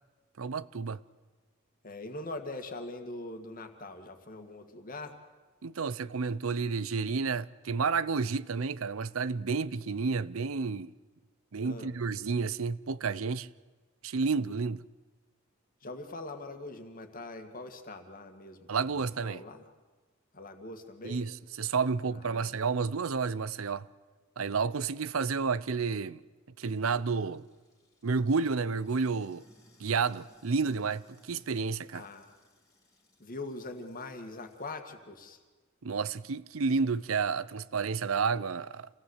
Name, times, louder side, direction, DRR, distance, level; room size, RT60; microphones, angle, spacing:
voice 1, 0.4-1.0 5.6-10.9 11.5-13.5 14.0-14.8 18.7-19.4 21.0-23.9 24.4-26.2 26.6-27.4 28.0-29.5 29.8-32.0 35.8-38.9, right 5 dB, 90° right, 0.7 m, -31 dB
voice 2, 1.8-5.2 11.6-11.9 15.8-19.6 20.3-21.2 22.1-22.6 31.9-32.4 33.2-35.4, left 2 dB, 45° left, 2.1 m, -42 dB
Sink (filling or washing), 26.7-34.9, equal, 15° left, 2.8 m, -63 dB
27.5 x 17.5 x 8.1 m
head